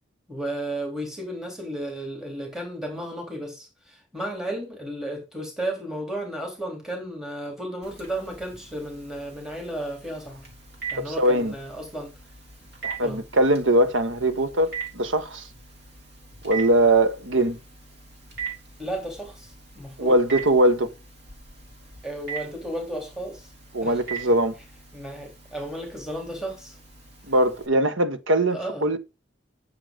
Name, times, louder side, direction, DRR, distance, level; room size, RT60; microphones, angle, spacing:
voice 1, 0.3-10.4 10.9-12.1 13.0-13.2 18.8-20.2 22.0-23.5 23.8-24.0 24.9-26.8 28.5-28.9, right 1 dB, ahead, 3.1 m, -33 dB
Telephone, 7.8-27.7, right 6 dB, 55° right, 3.6 m, -41 dB
voice 2, 11.0-11.5 12.8-15.4 16.4-17.6 20.0-20.9 23.7-24.5 27.3-29.0, right 1 dB, 85° right, 1.2 m, -21 dB
9.1 x 6.9 x 5.1 m
head